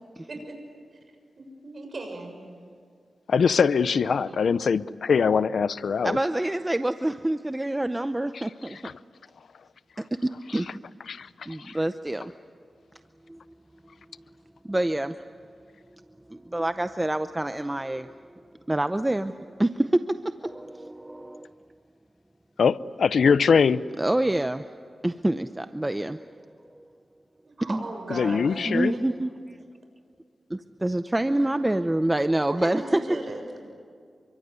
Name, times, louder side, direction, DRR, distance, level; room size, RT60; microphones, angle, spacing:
voice 1, 1.4-2.4 4.0-4.5 27.4-29.0 31.3-31.4 32.5-33.4, right 2 dB, 55° right, 4 dB, 6.7 m, -37 dB
voice 2, 3.3-6.2 11.1-11.3 11.6-11.8 22.6-23.8 28.1-28.9, left 6 dB, 80° left, 17 dB, 0.6 m, -22 dB
voice 3, 6.0-8.7 10.1-10.8 11.5-12.3 13.3-13.4 14.6-15.1 16.3-18.1 18.7-19.3 19.6-20.0 20.4-21.5 24.0-24.6 25.0-26.4 26.8-26.9 27.7-27.8 28.6-29.6 30.5-33.0, right 1 dB, 15° right, 10 dB, 0.7 m, -26 dB
28.5 x 24.5 x 8.2 m, 2.2 s
wide cardioid pair, 85°, 0 cm